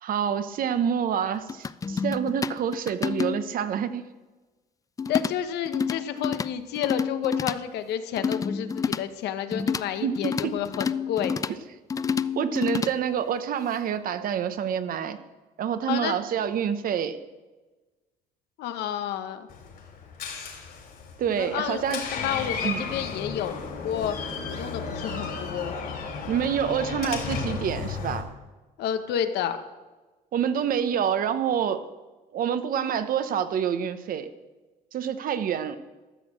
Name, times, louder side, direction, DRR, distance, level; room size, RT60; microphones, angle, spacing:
voice 1, 0.0-4.0 10.0-10.1 10.4-10.5 11.5-11.6 12.3-15.2 15.6-17.2 21.2-22.0 22.6-22.8 26.3-28.2 30.3-31.8 32.3-34.3 34.9-35.8, right 8 dB, 55° right, 11 dB, 0.9 m, -27 dB
sound 1, 1.5-3.6 5.0-5.3 5.7-6.5 6.8-7.6 8.2-9.0 9.5-9.8 10.2-11.5 11.9-12.9, left 6 dB, 20° left, 0.3 m, -29 dB
voice 2, 5.1-11.4 15.9-16.2 18.6-19.5 21.3-23.6 23.8-25.8 28.8-29.6, left 9 dB, 80° left, 9 dB, 1.1 m, -30 dB
Door, 19.5-28.2, left 5 dB, 60° left, 3.1 m, -34 dB
13.0 x 6.3 x 7.6 m, 1.2 s
cardioid pair, 110°, 17 cm